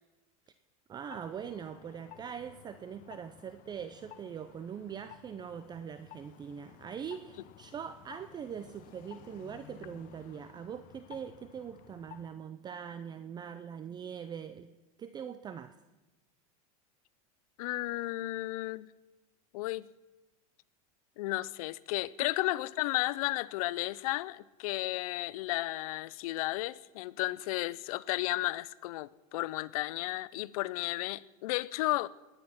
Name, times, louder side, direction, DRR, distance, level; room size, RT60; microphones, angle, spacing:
voice 1, 0.9-14.7 15.0-15.8 22.2-22.3, right 7 dB, 20° right, 0.5 m, -42 dB
sound 1, 1.0-12.4, left 12 dB, 45° left, 0.8 m, -54 dB
voice 2, 17.6-18.9 19.5-19.9 21.2-32.1, left 18 dB, 75° left, 0.6 m, -33 dB
20.0 x 9.8 x 5.9 m
supercardioid pair, 125°, 19 cm